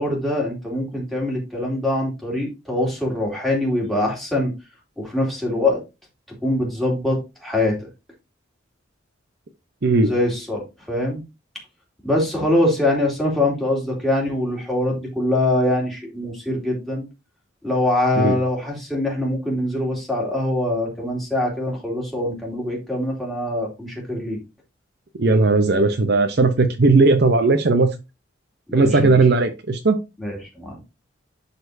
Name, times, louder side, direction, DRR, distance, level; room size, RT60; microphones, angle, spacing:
voice 1, 0.0-4.5 5.0-5.8 6.4-7.9 10.0-10.6 10.9-11.2 12.0-17.1 17.6-24.4 28.7-29.2 30.2-30.8, left 1 dB, ahead, -3 dB, 2.6 m, -23 dB
voice 2, 25.2-27.9 28.7-30.0, right 3 dB, 55° right, 7 dB, 0.7 m, -17 dB
11.5 x 4.3 x 2.7 m, 0.26 s
head